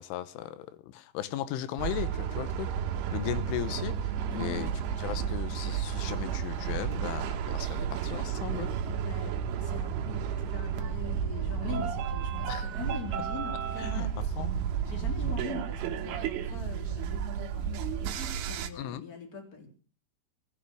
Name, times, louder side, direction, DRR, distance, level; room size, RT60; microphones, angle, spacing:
voice 1, 0.0-2.7 3.1-4.7 5.0-8.7 12.5-12.7 13.8-14.1 14.4-14.5 18.7-19.1, left 13 dB, 85° left, 14 dB, 3.5 m, -37 dB
sound 1, 1.8-18.7, right 8 dB, 85° right, 3.9 m, -32 dB
voice 2, 3.1-3.4 4.3-4.6 9.0-9.3 9.6-14.1 14.8-19.7, left 4 dB, 20° left, 3 dB, 3.6 m, -42 dB
19.5 x 7.6 x 8.5 m, 0.39 s
omnidirectional pair, 5.5 m